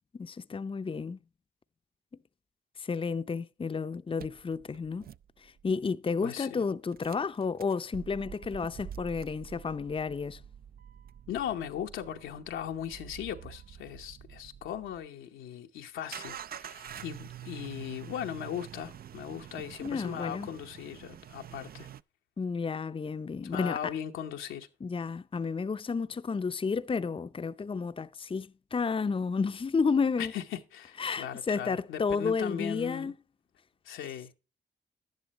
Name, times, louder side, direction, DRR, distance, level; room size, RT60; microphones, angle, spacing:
voice 1, 0.1-1.2 2.8-5.1 5.4-10.4 19.8-20.5 22.4-23.9 24.8-30.3 31.0-33.1, left 5 dB, 25° left, 0.6 m, -31 dB
sound 1, 4.2-5.9 6.9-15.1 16.1-22.0, right 9 dB, 50° right, 0.4 m, -47 dB
voice 2, 6.2-6.6 11.3-21.9 23.4-24.7 30.2-33.1 33.8-34.3, left 9 dB, 85° left, 0.9 m, -38 dB
11.0 x 10.5 x 3.0 m
supercardioid pair, 45°, 20 cm